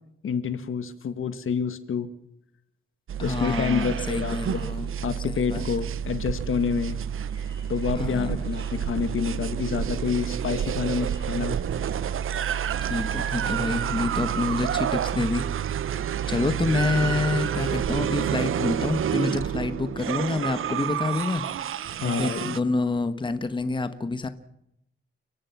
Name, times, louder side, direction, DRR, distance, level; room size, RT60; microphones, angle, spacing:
voice 1, 0.2-2.1 3.2-4.7 5.0-7.0 7.7-11.6 22.0-22.6, left 6 dB, 75° left, 11 dB, 1.7 m, -28 dB
sound 1, 3.1-22.6, right 9 dB, 75° right, 0.7 m, -29 dB
voice 2, 3.2-4.9 5.5-5.7 8.0-8.3 12.8-15.4 16.3-21.4 22.0-24.3, left 3 dB, 25° left, 11 dB, 1.1 m, -27 dB
sound 2, 4.1-12.2, equal, 20° right, 7.0 m, -48 dB
29.5 x 16.5 x 5.9 m, 0.80 s
wide cardioid pair, 150°, 21 cm